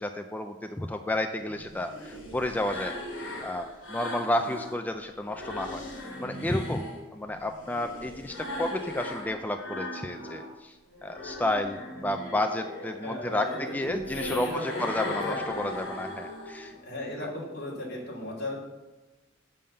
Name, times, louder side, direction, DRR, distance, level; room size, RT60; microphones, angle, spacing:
voice 1, 0.0-2.9 3.4-5.8 6.2-6.8 7.1-10.7 11.0-16.7 17.2-17.3, left 1 dB, 10° left, 6 dB, 0.3 m, -31 dB
sound 1, 1.4-4.8 5.2-10.5 10.9-16.8, left 1 dB, 80° left, 2.2 m, -38 dB
voice 2, 13.0-14.0 14.4-15.7 16.7-18.6, left 1 dB, 60° left, -4 dB, 2.8 m, -36 dB
7.0 x 5.5 x 6.5 m, 1.1 s
head